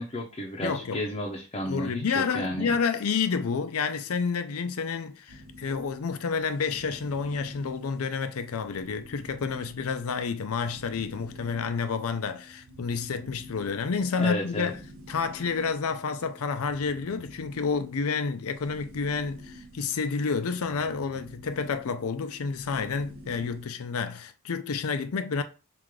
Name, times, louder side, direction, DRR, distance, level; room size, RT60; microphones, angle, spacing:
voice 1, 0.0-2.8 14.2-14.7, left 1 dB, 25° left, 0.6 m, -32 dB
voice 2, 0.6-1.0 1.7-14.8 15.1-25.4, left 5 dB, 75° left, 0.5 m, -29 dB
sound 1, 5.3-23.6, equal, 70° right, 0.6 m, -49 dB
4.8 x 2.5 x 3.7 m
head